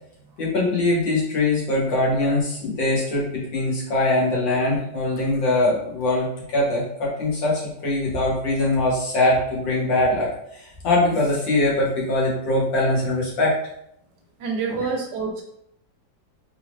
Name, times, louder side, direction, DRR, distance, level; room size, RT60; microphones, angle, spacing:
voice 1, 0.4-13.5 14.7-14.9, left 2 dB, 75° left, -5 dB, 2.0 m, -22 dB
voice 2, 14.4-15.4, right 4 dB, 70° right, 1 dB, 1.2 m, -27 dB
3.9 x 3.7 x 2.5 m, 0.76 s
omnidirectional pair, 2.0 m